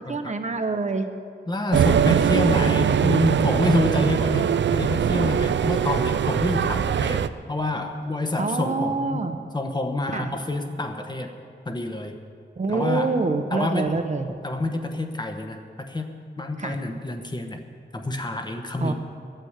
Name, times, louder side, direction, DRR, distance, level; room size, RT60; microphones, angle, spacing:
voice 1, 0.1-1.1 8.4-9.4 10.1-10.3 12.6-14.3 16.6-16.8 18.8-18.9, right 3 dB, 40° right, 7 dB, 0.8 m, -26 dB
voice 2, 1.5-9.2 9.5-11.3 11.7-12.2 12.7-13.2 13.5-14.0 14.4-17.6 17.9-18.9, left 2 dB, 25° left, 5 dB, 1.0 m, -27 dB
sound 1, 1.7-7.3, right 8 dB, 85° right, 0.4 m, -21 dB
13.5 x 9.2 x 8.0 m, 2.2 s
wide cardioid pair, 150°, 18 cm